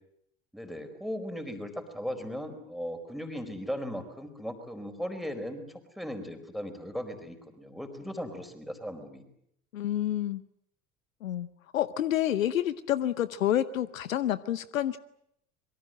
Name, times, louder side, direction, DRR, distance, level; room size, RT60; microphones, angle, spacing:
voice 1, 0.5-9.2, equal, ahead, 6 dB, 4.6 m, -37 dB
voice 2, 9.7-10.4 11.2-11.5 11.7-15.0, left 12 dB, 70° left, 17 dB, 0.9 m, -28 dB
26.5 x 23.0 x 7.7 m, 0.74 s
figure-of-eight pair, 70°, 41 cm